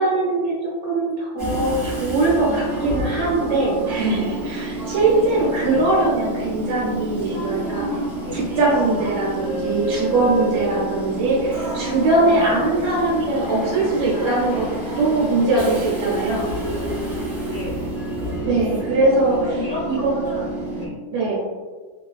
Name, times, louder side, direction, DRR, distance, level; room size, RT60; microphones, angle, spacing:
voice 1, 0.0-7.8 8.3-14.7 15.0-16.5 18.4-19.4 19.9-20.1 21.1-21.4, right 2 dB, 85° right, -6 dB, 1.5 m, -21 dB
Train / Subway metro underground, 1.4-20.9, right 1 dB, 60° right, 0.8 m, -28 dB
voice 2, 5.0-5.9 8.2-8.5 12.4-12.6 17.5-17.8 19.3-20.9, left 2 dB, 65° left, -8 dB, 0.9 m, -33 dB
3.1 x 2.4 x 2.3 m, 1.4 s
omnidirectional pair, 2.1 m